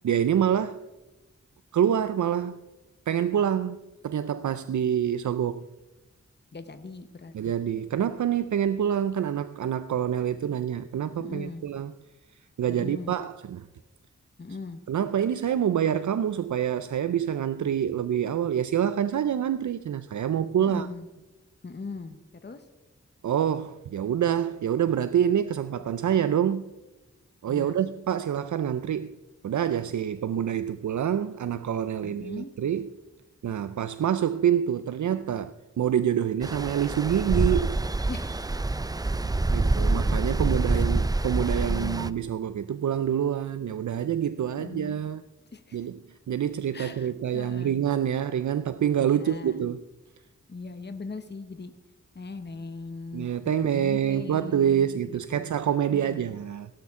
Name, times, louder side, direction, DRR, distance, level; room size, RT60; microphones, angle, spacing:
voice 1, 0.0-0.9 1.7-2.6 3.1-3.8 4.0-5.7 7.3-11.9 12.6-13.7 14.9-20.9 23.2-26.7 27.4-29.2 29.4-32.9 33.4-37.8 39.5-45.2 45.7-46.0 46.3-49.8 53.1-56.7, right 9 dB, 75° right, 0.5 m, -26 dB
voice 2, 6.5-7.6 11.2-11.6 12.7-13.2 14.4-14.8 20.6-21.1 21.6-22.7 27.5-27.8 32.0-32.5 38.1-38.6 39.5-39.6 40.6-40.8 41.5-42.1 44.6-45.0 45.5-45.9 46.7-47.8 49.0-49.6 50.5-51.7 52.1-55.5 55.9-56.3, left 3 dB, 35° left, 1.0 m, -40 dB
Stream, 36.4-42.1, right 2 dB, 15° right, 0.4 m, -26 dB
17.0 x 11.5 x 3.6 m
wide cardioid pair, 70°, 30 cm